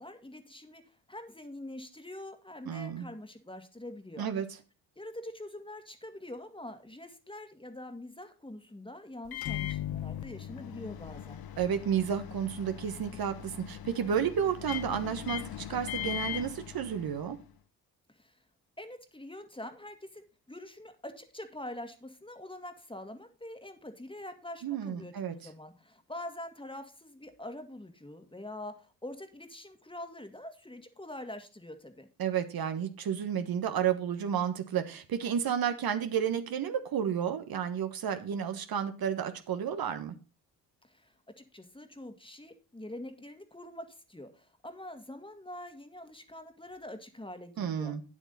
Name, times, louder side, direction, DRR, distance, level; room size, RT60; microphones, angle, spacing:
voice 1, 0.0-4.3 5.0-11.4 18.1-18.4 18.8-32.1 40.8-47.9, left 1 dB, 10° left, 7 dB, 1.9 m, -45 dB
voice 2, 2.7-3.1 4.2-4.5 11.6-17.4 24.6-25.3 32.2-40.1 47.6-48.0, right 8 dB, 55° right, 9 dB, 1.4 m, -31 dB
Microwave oven, 9.3-17.4, left 12 dB, 55° left, 1.1 m, -39 dB
9.2 x 8.0 x 4.1 m, 0.33 s
hypercardioid pair, 50°, 44 cm